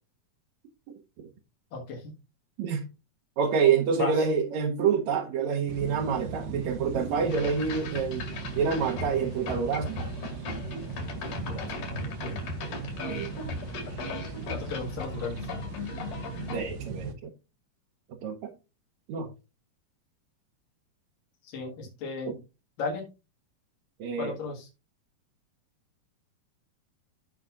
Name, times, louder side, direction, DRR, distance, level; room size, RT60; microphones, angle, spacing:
voice 1, 1.7-2.1 3.9-4.3 11.5-12.4 14.5-15.5 19.2-19.3 21.4-22.4 22.8-23.1 24.1-24.7, left 4 dB, 90° left, 3.4 m, -35 dB
voice 2, 3.4-10.0 13.1-13.3 16.5-17.3 18.2-18.5 19.1-19.3 22.3-22.4 24.0-24.3, right 6 dB, 70° right, 2.1 m, -27 dB
sound 1, 5.7-17.2, right 4 dB, 85° right, 2.7 m, -38 dB
sound 2, 7.3-16.6, left 3 dB, 75° left, 3.6 m, -38 dB
15.5 x 5.3 x 2.5 m
omnidirectional pair, 3.7 m